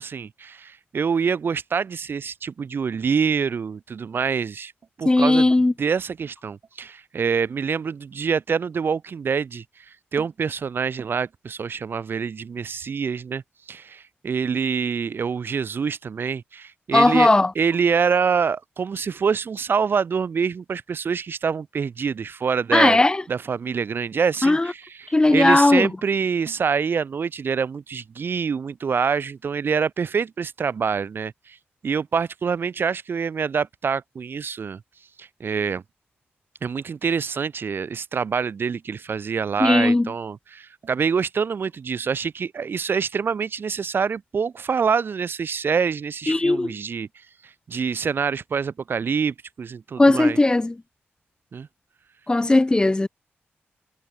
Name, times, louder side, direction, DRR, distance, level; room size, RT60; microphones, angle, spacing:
voice 1, 0.0-4.7 5.0-5.5 5.8-13.4 13.7-23.0 23.3-31.6 31.8-34.8 35.2-35.8 36.6-50.4 51.5-51.7, right 6 dB, 60° right, 6.2 m, -26 dB
voice 2, 5.1-5.7 16.9-17.5 22.7-23.2 24.4-24.7 25.1-25.9 39.6-40.1 46.3-46.7 50.0-50.7 52.3-53.1, left 2 dB, 20° left, 1.9 m, -17 dB
cardioid pair, 95°, 4 cm